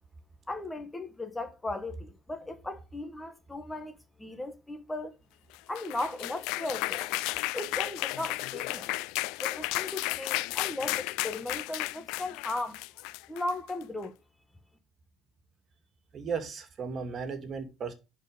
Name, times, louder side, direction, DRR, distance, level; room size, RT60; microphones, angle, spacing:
voice 1, 0.5-5.1 5.7-7.1 7.5-8.9 9.4-12.8 13.3-14.1, left 2 dB, 10° left, 1.4 m, -37 dB
sound 1, 5.5-13.8, left 20 dB, 80° left, 0.5 m, -33 dB
voice 2, 16.1-17.9, right 5 dB, 40° right, 2.5 m, -35 dB
10.5 x 4.7 x 5.1 m
cardioid pair, 110°, 0 cm